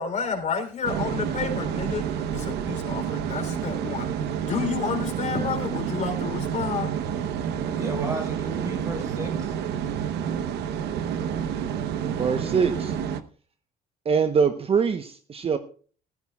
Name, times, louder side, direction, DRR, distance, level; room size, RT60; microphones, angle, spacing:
voice 1, 0.0-4.1 4.4-7.0, left 6 dB, 45° left, 4 dB, 3.4 m, -30 dB
sound 1, 0.8-13.2, right 8 dB, 80° right, 1.0 m, -29 dB
voice 2, 7.7-9.8, right 2 dB, 20° right, 3 dB, 4.7 m, -34 dB
voice 3, 12.1-13.0 14.0-15.6, right 6 dB, 35° right, 9 dB, 0.9 m, -23 dB
15.0 x 14.5 x 2.3 m, 0.40 s
cardioid pair, 110°, 17 cm